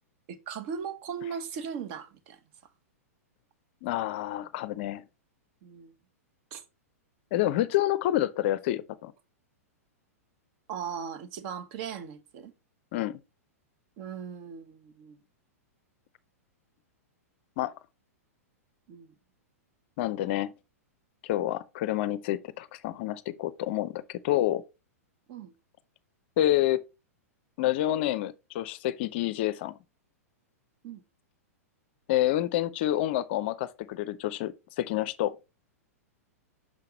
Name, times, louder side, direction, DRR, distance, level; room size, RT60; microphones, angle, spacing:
voice 1, 0.3-2.4 5.6-5.9 6.5-6.6 10.7-12.5 14.0-15.2 18.9-19.1 25.3-25.5 30.8-31.0, right 7 dB, 45° right, 1.0 m, -38 dB
voice 2, 3.8-5.0 7.3-9.1 12.9-13.2 17.6-17.7 20.0-20.5 21.2-24.6 26.4-26.8 27.6-29.7 32.1-35.4, left 13 dB, 45° left, 0.5 m, -28 dB
6.3 x 5.7 x 3.0 m
figure-of-eight pair, 100°, 8 cm